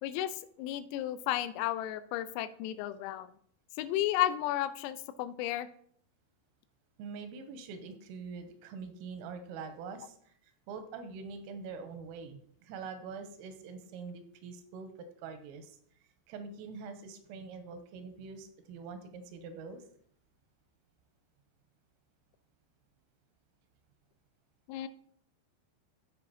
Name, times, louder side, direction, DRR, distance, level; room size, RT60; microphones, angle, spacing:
voice 1, 0.0-3.3 3.8-5.7 24.7-24.9, left 13 dB, 90° left, 13 dB, 3.3 m, -33 dB
voice 2, 7.0-10.3 10.7-14.9 15.2-15.8 16.3-19.8, right 5 dB, 90° right, 8 dB, 3.3 m, -44 dB
15.0 x 5.1 x 2.8 m, 0.64 s
omnidirectional pair, 5.9 m